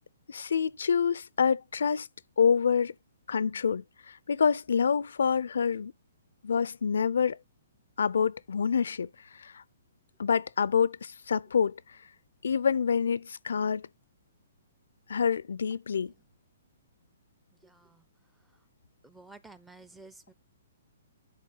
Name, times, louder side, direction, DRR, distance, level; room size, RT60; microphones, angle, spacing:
voice 1, 0.3-2.1 2.4-2.9 3.3-5.9 6.4-7.4 8.0-9.1 9.4-9.6 10.2-11.8 12.4-13.8 15.1-16.1, left 6 dB, 80° left, 0.4 m, -27 dB
voice 2, 17.6-18.0 19.0-20.3, right 3 dB, 5° right, 0.5 m, -52 dB
10.0 x 4.2 x 3.9 m
hypercardioid pair, 155°, 0 cm